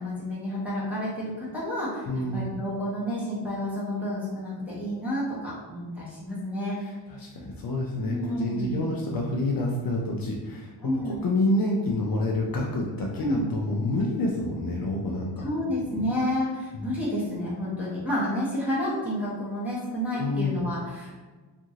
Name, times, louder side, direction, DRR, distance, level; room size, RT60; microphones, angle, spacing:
voice 1, 0.0-2.1 2.3-6.8 8.0-8.8 10.8-11.2 13.2-13.5 15.4-21.2, left 1 dB, 5° right, -9 dB, 1.0 m, -30 dB
voice 2, 2.1-2.5 6.8-15.5 16.0-16.1 16.7-16.9 20.1-20.6, left 2 dB, 55° left, -2 dB, 0.5 m, -28 dB
2.8 x 2.5 x 2.7 m, 1.3 s
wide cardioid pair, 140°, 44 cm